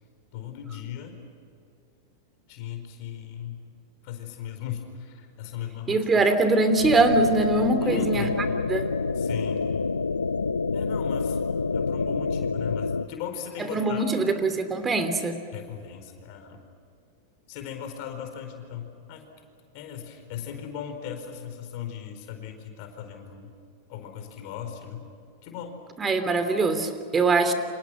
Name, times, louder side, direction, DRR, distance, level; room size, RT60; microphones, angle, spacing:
voice 1, 0.3-1.2 2.5-3.7 4.0-6.1 7.8-8.4 9.1-9.7 10.7-11.4 11.7-14.4 15.5-16.6 17.5-19.2 19.7-23.5 23.9-25.1 25.4-25.8, left 8 dB, 50° left, 5 dB, 4.5 m, -37 dB
voice 2, 5.9-8.2 8.7-8.9 13.7-15.4 26.0-27.5, right 3 dB, 20° right, 9 dB, 3.0 m, -22 dB
sound 1, 6.8-13.1, left 4 dB, 85° left, 0.6 m, -27 dB
29.5 x 27.0 x 6.4 m, 2.3 s
figure-of-eight pair, 95°, 0 cm